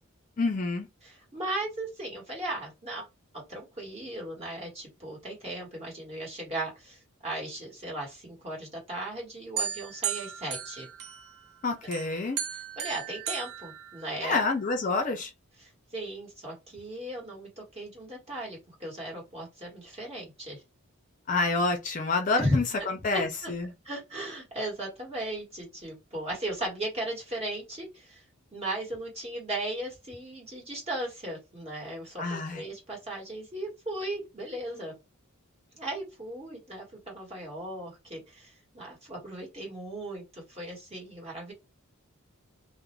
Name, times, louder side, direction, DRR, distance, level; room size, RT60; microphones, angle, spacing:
voice 1, 0.4-0.9 11.6-12.4 14.2-15.3 21.3-23.7 32.2-32.6, left 3 dB, 35° left, 0.5 m, -28 dB
voice 2, 1.0-3.1 3.5-10.9 12.8-14.4 15.6-20.6 22.4-22.9 23.1-23.5 23.8-28.2 28.5-35.0 35.7-41.5, right 1 dB, 30° right, 1.4 m, -36 dB
sound 1, 9.6-11.5 11.9-14.4, right 8 dB, 85° right, 0.6 m, -36 dB
2.5 x 2.0 x 3.0 m
head